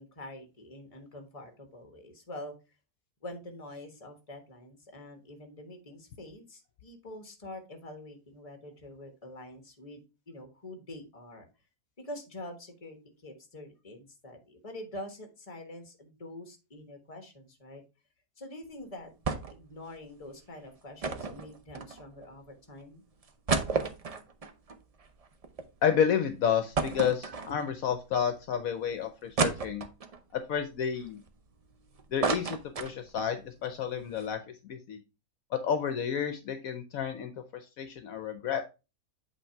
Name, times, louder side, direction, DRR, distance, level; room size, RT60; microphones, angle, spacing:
voice 1, 0.0-2.5 3.2-11.4 12.0-17.8 18.4-19.1 19.5-23.0, left 1 dB, 25° left, 5 dB, 1.4 m, -45 dB
sound 1, 19.2-19.7 20.0-20.1 21.0-22.3 22.8-22.9 23.2-25.7 26.1-26.2 26.7-27.9 28.4-28.5 29.4-30.2 30.8-31.7 32.0-33.3 33.7-33.8 34.0-34.3, right 4 dB, 70° right, 0.3 m, -32 dB
voice 2, 25.8-29.9 30.3-31.2 32.1-35.0 35.5-38.6, left 8 dB, 70° left, 9 dB, 1.1 m, -30 dB
8.2 x 3.3 x 4.5 m, 0.29 s
omnidirectional pair, 1.6 m